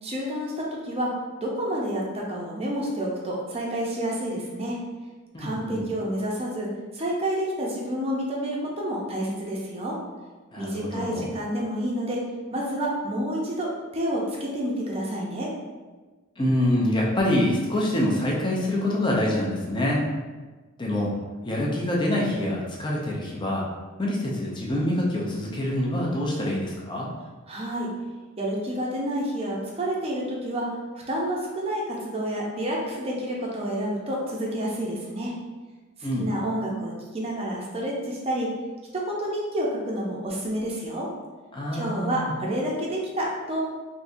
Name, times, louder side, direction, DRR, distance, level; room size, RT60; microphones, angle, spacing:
voice 1, 0.0-1.1 1.4-4.8 5.4-10.0 10.6-12.2 12.5-15.5 27.5-27.9 28.4-30.7 31.1-35.3 36.2-38.5 38.9-41.1 41.7-43.6, right 1 dB, 30° right, -3 dB, 0.5 m, -29 dB
voice 2, 5.3-5.8 10.5-11.3 16.4-20.0 20.8-21.1 21.4-23.6 24.0-27.1 36.0-36.3 41.5-42.3, left 1 dB, 20° left, -3 dB, 0.5 m, -25 dB
3.5 x 2.7 x 2.6 m, 1.3 s
head